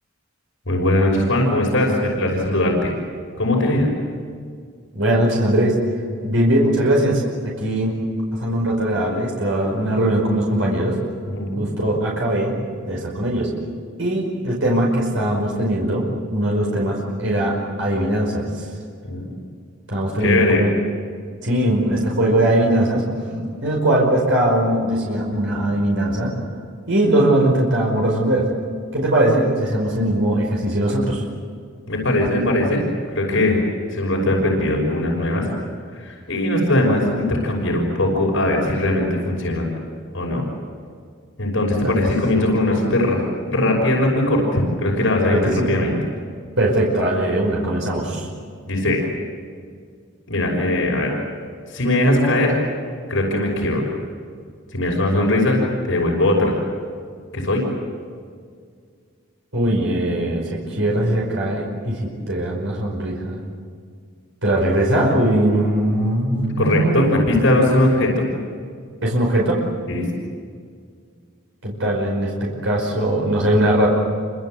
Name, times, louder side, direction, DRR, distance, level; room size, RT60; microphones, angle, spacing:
voice 1, 0.7-2.9 3.4-3.9 11.3-11.6 19.1-19.2 20.2-20.6 23.3-23.4 31.9-32.8 33.1-33.6 33.9-35.4 35.9-39.7 40.1-40.5 41.4-46.0 48.7-49.0 50.3-51.1 51.7-52.6 53.1-53.8 54.7-55.6 55.8-56.6 57.3-57.6 66.6-68.3 69.9-70.1, left 1 dB, 75° left, 0 dB, 6.0 m, -20 dB
voice 2, 4.9-5.8 6.2-8.0 8.4-11.0 11.6-12.6 12.8-13.5 14.0-16.0 16.3-18.6 19.9-20.7 21.4-23.0 23.6-26.3 26.9-28.5 28.9-31.2 41.8-41.9 45.3-45.7 46.6-48.3 59.5-63.4 64.4-67.1 69.0-69.6 71.6-73.9, right 1 dB, 75° right, -2 dB, 5.3 m, -20 dB
28.0 x 26.0 x 7.9 m, 2.1 s
head